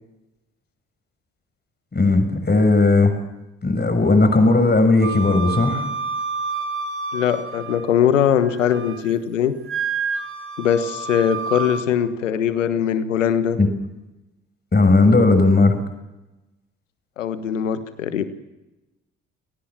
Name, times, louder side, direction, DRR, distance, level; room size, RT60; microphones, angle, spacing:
voice 1, 1.9-3.1 3.6-5.9 13.6-13.7 14.7-15.8, left 3 dB, 25° left, 6 dB, 6.3 m, -16 dB
Wind instrument woodwind instrument, 5.0-8.0 8.4-9.1 9.7-11.9, right 5 dB, 35° right, 4.5 m, -29 dB
voice 2, 7.1-9.5 10.6-13.6 17.2-18.3, left 9 dB, 85° left, 12 dB, 1.4 m, -21 dB
27.5 x 18.5 x 7.5 m, 1.0 s
figure-of-eight pair, 45°, 37 cm